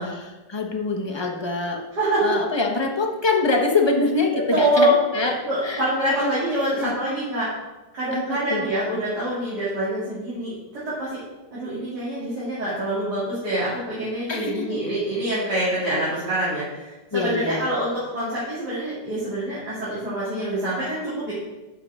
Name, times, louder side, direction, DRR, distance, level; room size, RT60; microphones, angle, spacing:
voice 1, 0.0-1.8 2.2-5.3 5.6-5.9 6.2-6.9 8.1-8.6 14.3-14.8 17.1-17.7, left 3 dB, 20° left, 1 dB, 0.7 m, -25 dB
voice 2, 2.0-2.4 4.5-4.9 5.4-7.5 7.9-11.2 11.5-21.3, right 1 dB, 60° right, -11 dB, 3.3 m, -25 dB
11.0 x 6.4 x 3.6 m, 1.1 s
omnidirectional pair, 2.0 m